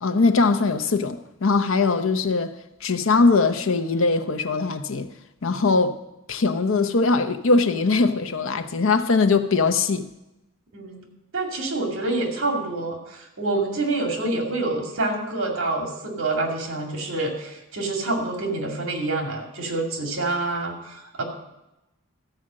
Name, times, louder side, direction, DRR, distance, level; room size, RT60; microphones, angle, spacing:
voice 1, 0.0-2.5 2.8-5.1 5.4-6.0 6.3-10.0, left 3 dB, 70° left, 0.7 m, -21 dB
voice 2, 10.7-11.1 11.3-21.2, right 2 dB, 75° right, 2.4 m, -27 dB
13.5 x 5.0 x 7.5 m
head